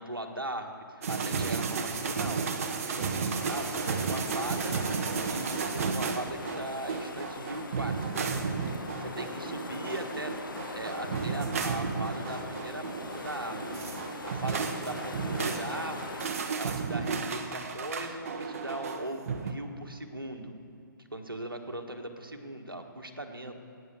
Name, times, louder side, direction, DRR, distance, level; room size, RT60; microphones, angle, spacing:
voice 1, 0.0-4.8 5.2-8.2 8.9-10.3 10.7-13.8 14.2-16.2 16.6-20.5 21.1-23.5, right 1 dB, 85° right, 5 dB, 1.5 m, -39 dB
sound 1, 1.0-19.5, right 5 dB, 40° right, 1.0 m, -33 dB
sound 2, 3.4-16.3, left 3 dB, 70° left, 1.4 m, -41 dB
sound 3, 10.1-18.6, right 2 dB, 60° right, 2.1 m, -49 dB
16.5 x 9.0 x 6.7 m, 2.5 s
figure-of-eight pair, 130°, 11 cm